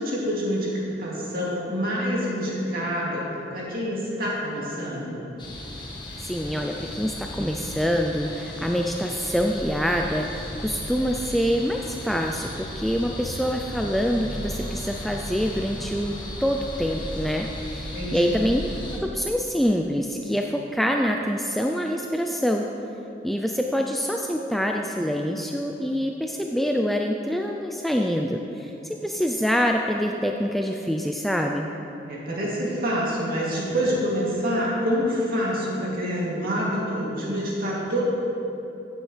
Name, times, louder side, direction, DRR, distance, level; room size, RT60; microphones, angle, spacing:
voice 1, 0.0-5.2 17.9-18.3 32.1-38.0, equal, 50° right, -6 dB, 2.6 m, -27 dB
sound 1, 5.4-19.0, left 1 dB, 25° left, 1.2 m, -35 dB
voice 2, 6.2-18.6 19.0-22.7 23.2-31.7, equal, ahead, 2 dB, 0.3 m, -25 dB
15.0 x 9.3 x 3.3 m, 2.9 s
head